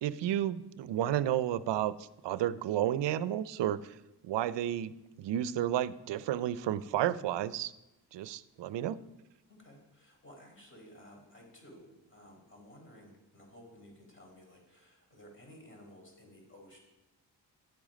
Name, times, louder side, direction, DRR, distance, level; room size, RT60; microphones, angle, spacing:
voice 1, 0.0-1.9 2.2-4.0 4.2-4.9 5.2-7.7 8.1-9.0, right 11 dB, 80° right, 16 dB, 0.6 m, -31 dB
voice 2, 9.5-16.8, equal, 30° left, 1 dB, 4.2 m, -55 dB
11.0 x 7.4 x 5.2 m, 0.96 s
cardioid pair, 55°, 42 cm